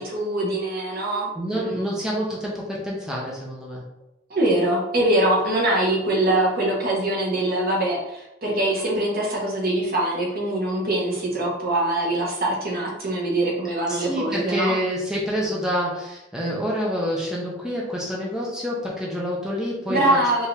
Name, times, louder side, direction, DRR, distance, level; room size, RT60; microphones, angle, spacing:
voice 1, 0.0-1.9 4.3-14.8 19.9-20.5, right 1 dB, 50° right, -2 dB, 1.2 m, -23 dB
voice 2, 1.3-3.8 13.9-20.0, equal, 5° right, -4 dB, 0.8 m, -27 dB
4.6 x 2.8 x 3.4 m, 0.88 s
head